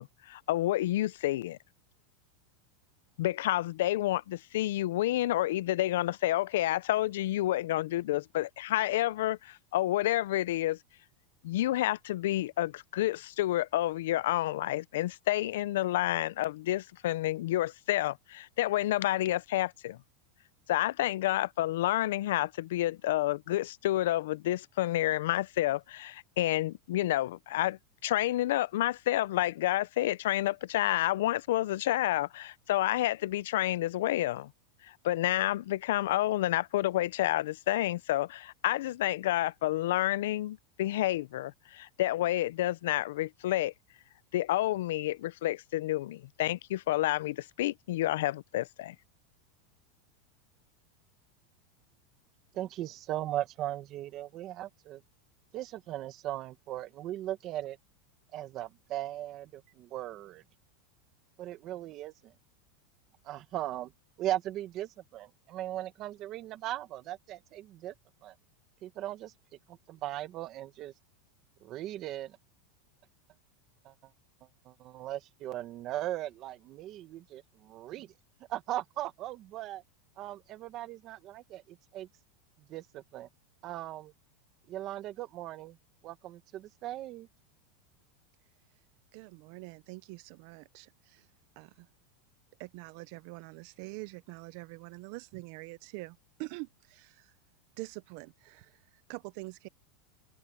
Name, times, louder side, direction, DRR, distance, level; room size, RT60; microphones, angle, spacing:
voice 1, 0.0-1.6 3.2-10.8 11.4-20.0 20.7-34.5 34.8-43.7 44.3-48.9, left 15 dB, 70° left, 0.4 m, -29 dB
voice 2, 52.5-55.0 55.5-57.8 58.3-60.4 61.4-62.3 63.2-63.9 64.2-67.9 68.2-68.3 68.8-69.3 69.7-70.9 71.6-72.4 73.8-73.9 74.6-78.1 78.5-79.8 80.2-82.1 82.7-83.3 83.6-84.1 84.7-85.8 86.0-87.3, right 13 dB, 30° right, 1.4 m, -38 dB
voice 3, 89.1-91.3 91.6-91.9 92.6-97.3 97.8-98.8 99.1-99.7, right 24 dB, 45° right, 0.4 m, -45 dB
supercardioid pair, 170°, 0 cm